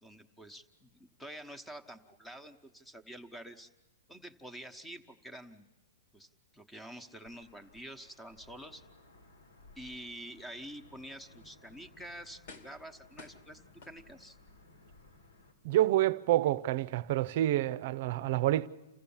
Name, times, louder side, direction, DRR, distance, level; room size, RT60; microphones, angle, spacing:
voice 1, 0.0-3.7 4.1-5.7 6.1-8.8 9.8-14.4, right 1 dB, 5° left, 1.2 m, -48 dB
Wind / Thunder / Rain, 7.3-15.5, left 2 dB, 85° left, 4.3 m, -60 dB
sound 1, 12.5-12.9 13.2-14.4 15.0-15.1, left 3 dB, 60° left, 2.1 m, -53 dB
voice 2, 15.6-18.7, right 14 dB, 55° right, 0.6 m, -28 dB
28.5 x 14.5 x 7.2 m
hypercardioid pair, 135°, 0 cm